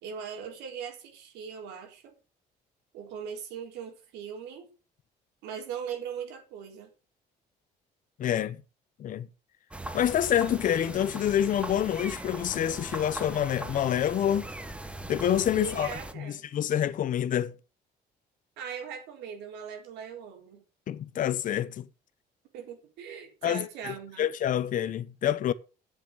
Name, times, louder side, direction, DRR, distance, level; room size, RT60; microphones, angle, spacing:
voice 1, 0.0-2.1 2.9-4.7 5.4-6.9 15.6-16.4 18.6-20.6 22.5-24.2, right 7 dB, 90° right, 4.1 m, -40 dB
voice 2, 8.2-8.6 9.0-9.3 9.9-14.5 15.1-15.9 16.2-17.5 20.9-21.9 23.4-25.5, left 10 dB, 50° left, 0.8 m, -27 dB
sound 1, 9.7-16.1, right 1 dB, 5° right, 1.2 m, -40 dB
8.8 x 7.6 x 7.4 m
cardioid pair, 110°, 17 cm